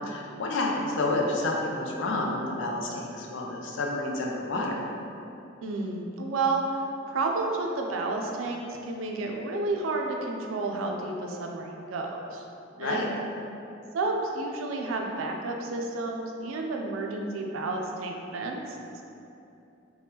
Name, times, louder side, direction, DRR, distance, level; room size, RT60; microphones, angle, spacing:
voice 1, 0.1-4.8 12.8-13.1, left 2 dB, 65° left, -1 dB, 0.4 m, -29 dB
voice 2, 5.6-6.6 7.1-12.4 12.8-13.1 13.9-19.0, right 3 dB, 85° right, 2 dB, 0.4 m, -31 dB
2.8 x 2.2 x 3.4 m, 2.8 s
head